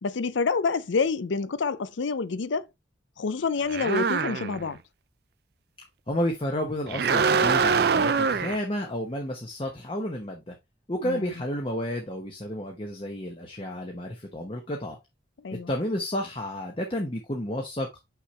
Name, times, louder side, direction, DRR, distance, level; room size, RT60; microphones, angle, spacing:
voice 1, 0.0-2.7 3.2-4.8 11.0-11.3 15.4-15.7, left 4 dB, 80° left, 0.5 m, -28 dB
sound 1, 3.7-4.7 6.9-8.6, right 5 dB, 55° right, 0.5 m, -24 dB
voice 2, 6.1-10.5 10.9-15.0 15.5-17.9, left 1 dB, 30° left, 0.9 m, -31 dB
5.8 x 5.6 x 3.2 m
head